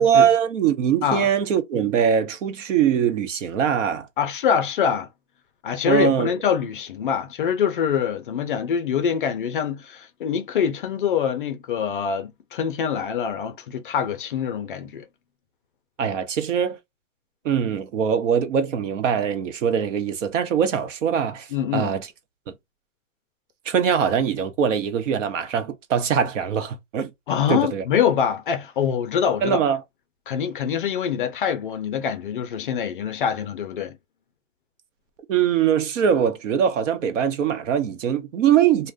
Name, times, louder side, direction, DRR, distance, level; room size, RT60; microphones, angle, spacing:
voice 1, 0.0-4.1 5.8-6.3 16.0-16.8 17.4-22.1 23.7-27.1 27.5-27.8 29.4-29.8 35.3-38.9, right 8 dB, 65° right, 0.8 m, -22 dB
voice 2, 4.2-5.1 5.6-15.0 21.5-21.9 27.3-29.6 30.3-34.0, left 8 dB, 40° left, 0.4 m, -24 dB
2.5 x 2.1 x 3.4 m
supercardioid pair, 170°, 40 cm